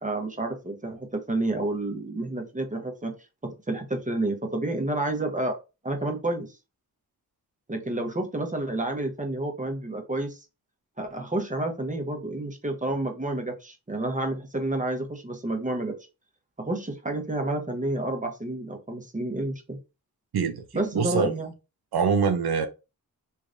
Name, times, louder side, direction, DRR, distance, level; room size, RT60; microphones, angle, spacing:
voice 1, 0.0-3.1 3.4-5.6 5.8-6.6 7.7-10.4 11.0-15.9 16.6-19.8 20.7-21.5, right 2 dB, 20° right, 0.9 m, -30 dB
voice 2, 20.3-21.3 21.9-22.7, right 6 dB, 80° right, 0.5 m, -24 dB
3.3 x 3.1 x 2.5 m
cardioid pair, 55°, 37 cm